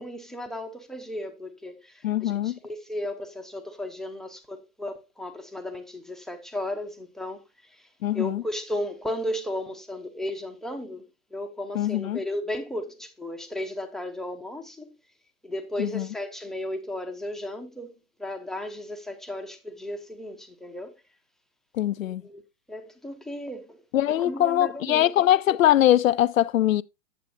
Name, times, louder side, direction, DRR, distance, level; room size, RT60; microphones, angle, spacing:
voice 1, 0.0-7.4 7.7-7.9 8.1-14.9 15.4-21.0 22.0-22.4 22.7-25.1, left 1 dB, ahead, 0.8 m, -35 dB
voice 2, 2.0-2.6 8.0-8.4 11.7-12.2 15.8-16.1 21.7-22.2 23.9-26.8, left 12 dB, 80° left, 0.5 m, -22 dB
9.0 x 7.6 x 2.7 m
hypercardioid pair, 120°, 39 cm